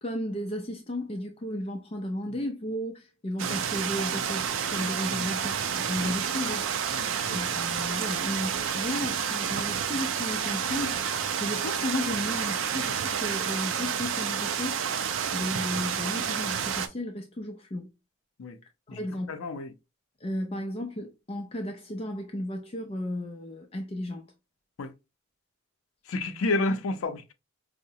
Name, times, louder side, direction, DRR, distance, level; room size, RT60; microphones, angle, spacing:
voice 1, 0.0-5.6 5.9-6.7 7.3-10.9 11.4-14.8 15.3-17.9 18.9-19.3 20.2-24.2, left 1 dB, 30° left, 0.4 m, -34 dB
sound 1, 3.4-16.9, right 7 dB, 70° right, 0.4 m, -30 dB
voice 2, 19.3-19.7 24.8-24.9 26.1-27.3, left 2 dB, 85° left, 0.5 m, -30 dB
4.6 x 2.0 x 2.7 m
head